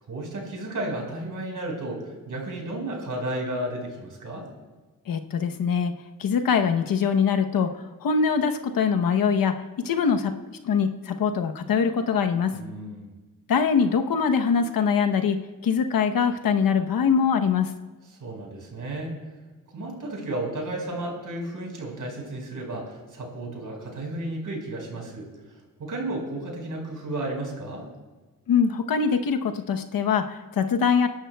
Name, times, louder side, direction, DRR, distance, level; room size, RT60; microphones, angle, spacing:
voice 1, 0.1-4.5 12.5-13.1 18.2-19.2 19.7-25.3 25.8-27.9, right 1 dB, 65° right, 0 dB, 4.9 m, -33 dB
voice 2, 5.1-5.9 6.2-7.7 8.0-9.5 9.8-12.6 13.5-15.4 15.6-17.7 28.5-31.1, left 6 dB, 80° left, 6 dB, 1.0 m, -23 dB
28.0 x 11.5 x 2.3 m, 1.3 s
cardioid pair, 55°, 34 cm